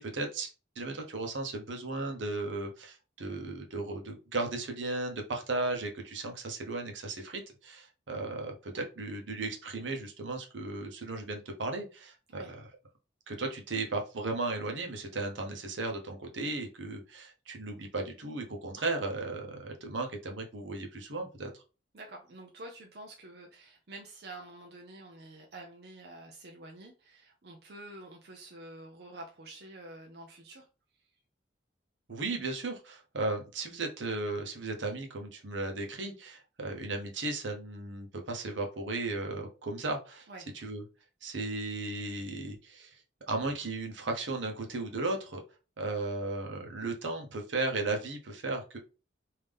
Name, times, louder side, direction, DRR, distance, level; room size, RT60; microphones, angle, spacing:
voice 1, 0.0-12.6 13.3-21.6 32.1-40.3 40.5-40.8 41.2-43.0 43.3-45.4 45.8-48.8, right 2 dB, 80° right, 0.9 m, -35 dB
voice 2, 21.9-30.7 40.3-40.5, right 2 dB, 60° right, 0.5 m, -48 dB
3.5 x 2.7 x 3.4 m
head